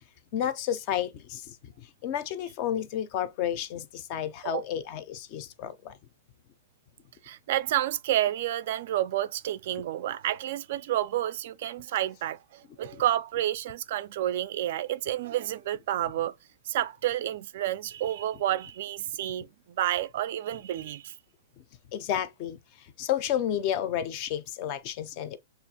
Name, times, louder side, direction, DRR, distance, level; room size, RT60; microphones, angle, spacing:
voice 1, 0.3-6.0 12.9-13.0 21.9-25.4, left 10 dB, 35° left, 0.4 m, -31 dB
voice 2, 7.2-16.3 16.7-19.5 19.8-21.1, right 12 dB, 50° right, 0.3 m, -30 dB
6.6 x 2.4 x 2.8 m
hypercardioid pair, 160°, 0 cm